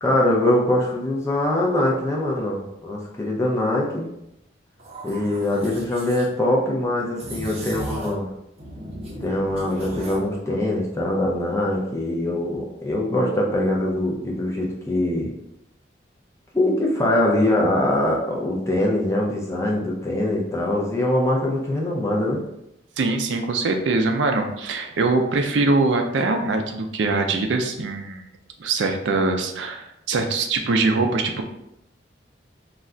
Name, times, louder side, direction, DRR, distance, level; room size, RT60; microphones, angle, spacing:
voice 1, 0.0-4.1 5.0-8.3 9.2-15.3 16.5-22.4, left 1 dB, 15° left, -2 dB, 0.5 m, -23 dB
sound 1, 4.8-6.3 7.1-8.3 8.6-10.3, right 1 dB, 35° right, 0.6 m, -36 dB
voice 2, 23.0-28.2 28.6-31.5, right 3 dB, 80° right, 5 dB, 0.4 m, -22 dB
2.3 x 2.1 x 3.7 m, 0.83 s
head